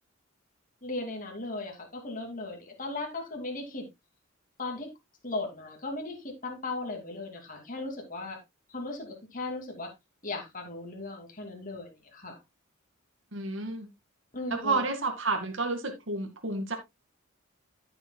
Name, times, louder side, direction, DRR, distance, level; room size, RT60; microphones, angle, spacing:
voice 1, 0.8-3.9 4.6-4.9 5.2-8.4 8.7-9.9 10.2-12.4 14.3-14.8, left 2 dB, 40° left, 2.6 m, -37 dB
voice 2, 13.3-13.9 14.5-16.8, right 3 dB, 60° right, 2.1 m, -30 dB
14.5 x 7.2 x 2.3 m
head